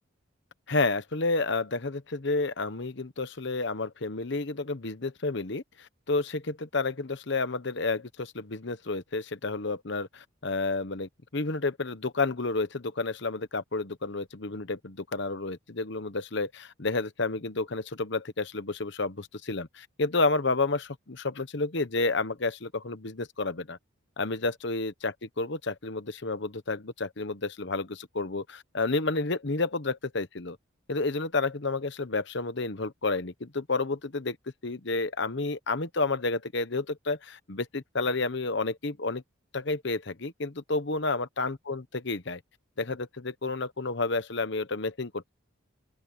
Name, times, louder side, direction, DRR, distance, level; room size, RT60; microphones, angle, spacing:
voice 1, 0.7-23.8 24.2-30.6 30.9-34.4 34.6-39.2 39.5-42.4 42.8-45.3, left 3 dB, 55° left, 1.1 m, -30 dB
open air
head